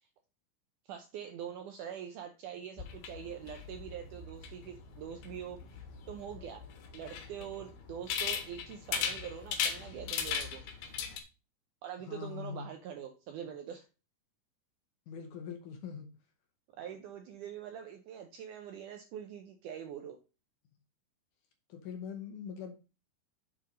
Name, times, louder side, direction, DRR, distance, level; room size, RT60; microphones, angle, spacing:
voice 1, 0.9-5.8 6.1-6.7 6.9-10.6 11.8-13.9 16.8-20.2, right 9 dB, 80° right, 5 dB, 1.9 m, -44 dB
sound 1, 2.8-11.2, left 7 dB, 85° left, 3.1 m, -38 dB
voice 2, 12.1-12.7 15.1-16.1 21.7-22.8, left 7 dB, 70° left, 5 dB, 2.2 m, -42 dB
7.4 x 4.3 x 5.1 m, 0.31 s
omnidirectional pair, 4.3 m